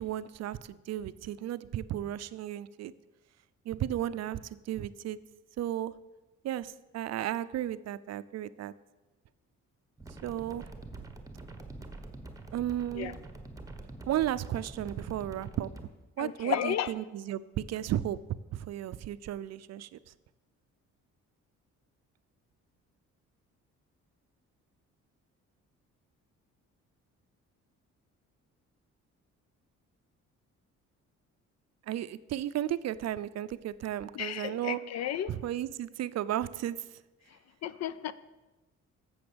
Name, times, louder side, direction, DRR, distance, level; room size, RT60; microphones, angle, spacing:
voice 1, 0.0-2.9 3.7-5.2 5.6-5.9 6.4-8.7 10.2-10.7 12.5-13.1 14.1-15.7 16.2-18.2 18.5-20.0 31.9-34.8 35.3-36.8, right 12 dB, 60° right, 15 dB, 0.5 m, -34 dB
sound 1, 10.0-15.9, right 2 dB, 10° right, 1.1 m, -46 dB
voice 2, 16.2-16.9 34.1-35.3 37.6-38.1, left 10 dB, 60° left, 17 dB, 0.5 m, -33 dB
7.8 x 6.9 x 6.8 m, 1.1 s
cardioid pair, 90°, 30 cm